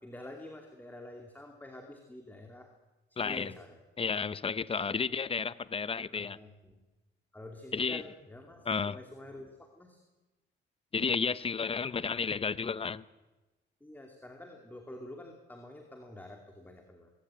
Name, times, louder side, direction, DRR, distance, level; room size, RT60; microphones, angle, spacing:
voice 1, 0.0-2.7 3.1-3.8 6.1-6.8 7.3-10.0 13.8-17.1, left 1 dB, 10° left, 2.6 m, -48 dB
voice 2, 3.2-3.6 4.0-6.4 7.7-8.0 8.7-9.0 10.9-13.0, left 5 dB, 30° left, 0.8 m, -32 dB
20.0 x 16.5 x 9.0 m
cardioid pair, 90°, 20 cm